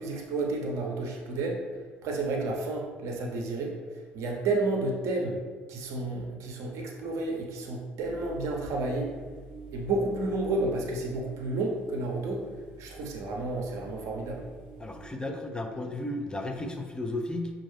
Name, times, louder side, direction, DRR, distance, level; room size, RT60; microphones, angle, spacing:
voice 1, 0.0-1.6 2.0-3.8 4.1-5.4 5.7-9.1 9.7-12.4 12.8-14.4, right 2 dB, 60° right, 1 dB, 0.8 m, -31 dB
sound 1, 8.0-15.1, right 3 dB, 80° left, 0.8 m, -48 dB
voice 2, 14.8-17.5, left 1 dB, 15° left, 3 dB, 0.6 m, -34 dB
6.1 x 2.5 x 3.2 m, 1.4 s
figure-of-eight pair, 50°, 6 cm